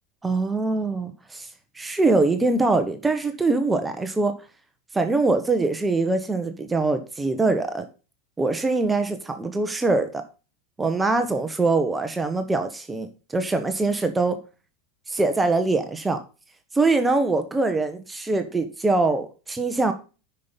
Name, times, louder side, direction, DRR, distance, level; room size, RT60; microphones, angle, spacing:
voice 1, 0.2-1.5 1.7-4.4 4.9-7.9 8.4-10.2 10.8-14.4 15.1-16.2 16.7-19.9, right 3 dB, 15° right, 8 dB, 1.3 m, -23 dB
9.3 x 5.9 x 5.3 m, 0.33 s
hypercardioid pair, 105°, 0 cm